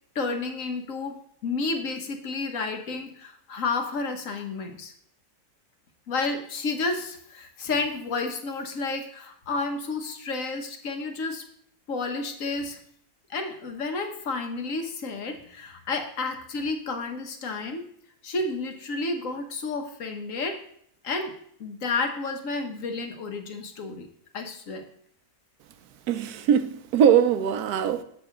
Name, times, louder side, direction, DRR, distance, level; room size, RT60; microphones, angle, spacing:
voice 1, 0.1-4.9 6.1-11.4 11.9-12.8 13.3-17.9 18.2-20.6 21.0-21.3 21.6-24.1 24.3-24.9, left 3 dB, 60° left, 1.3 m, -31 dB
voice 2, 26.1-28.0, right 8 dB, 80° right, 1.1 m, -21 dB
7.4 x 6.3 x 3.7 m
omnidirectional pair, 1.6 m